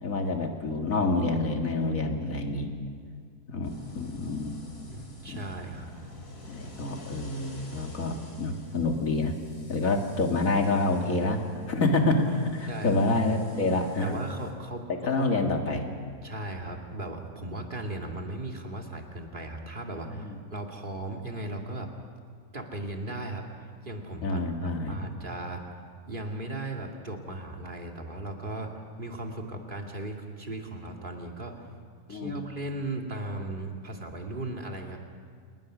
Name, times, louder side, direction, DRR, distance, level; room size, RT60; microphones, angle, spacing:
voice 1, 0.0-2.7 3.5-3.7 3.9-4.6 5.3-5.4 6.5-9.4 9.7-11.4 11.7-14.2 15.0-15.9 20.1-20.4 24.2-25.1 32.1-32.4, left 2 dB, 60° left, 3 dB, 2.4 m, -27 dB
sound 1, 3.6-14.5, left 2 dB, 75° left, 3.3 m, -48 dB
voice 2, 4.9-5.9 12.7-13.0 14.0-15.4 16.2-21.9 22.5-24.4 24.9-25.8 26.1-28.7 29.0-31.6 32.1-35.0, right 2 dB, 30° right, 2 dB, 2.3 m, -37 dB
28.5 x 20.5 x 6.2 m, 2.1 s
omnidirectional pair, 1.6 m